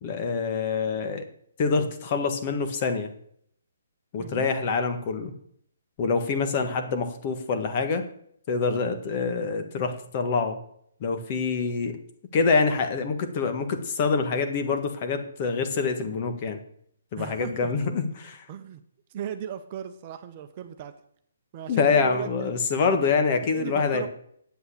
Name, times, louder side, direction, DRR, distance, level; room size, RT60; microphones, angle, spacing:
voice 1, 0.0-1.3 1.6-3.1 4.1-5.3 6.0-8.0 8.5-10.6 11.0-12.0 12.3-16.6 17.1-18.4 21.7-24.1, left 4 dB, 35° left, 7 dB, 1.5 m, -26 dB
voice 2, 17.2-17.7 18.5-18.8 19.1-20.9 21.5-22.5 23.5-24.1, right 9 dB, 35° right, 7 dB, 1.0 m, -36 dB
8.2 x 7.7 x 8.5 m, 0.67 s
hypercardioid pair, 160°, 0 cm